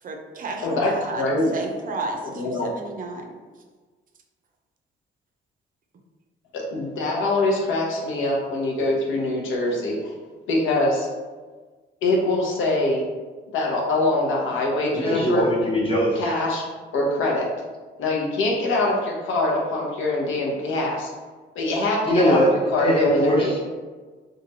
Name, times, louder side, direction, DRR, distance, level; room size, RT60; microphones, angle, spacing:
voice 1, 0.0-1.2 1.5-3.4, right 3 dB, 45° right, 2 dB, 0.5 m, -32 dB
voice 2, 1.2-1.5 2.3-2.7 6.5-10.1 10.5-11.1 12.0-13.0 13.5-15.4 16.2-16.6 16.9-17.5 18.0-21.1 21.5-22.5 22.7-23.6, left 2 dB, 80° left, -2 dB, 0.7 m, -23 dB
voice 3, 14.9-16.3 22.0-22.5 22.8-23.6, equal, 25° left, -3 dB, 0.8 m, -21 dB
2.8 x 2.3 x 2.7 m, 1.4 s
cardioid pair, 90°, 20 cm